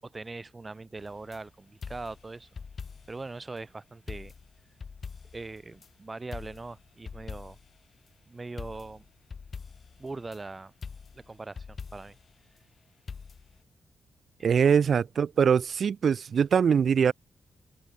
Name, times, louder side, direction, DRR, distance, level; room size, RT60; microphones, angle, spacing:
voice 1, 0.0-2.5 3.1-4.3 5.3-7.6 8.3-9.1 10.0-10.7 11.1-12.2 14.4-14.7, right 3 dB, 30° right, 5.5 m, -41 dB
sound 1, 1.0-1.4 1.8-3.3 3.6-3.7 4.1-5.9 6.3-7.8 8.6-10.4 10.8-12.3 13.1-13.6, left 5 dB, 50° left, 5.3 m, -43 dB
voice 2, 14.4-17.1, right 7 dB, 65° right, 0.3 m, -23 dB
supercardioid pair, 55°, 0 cm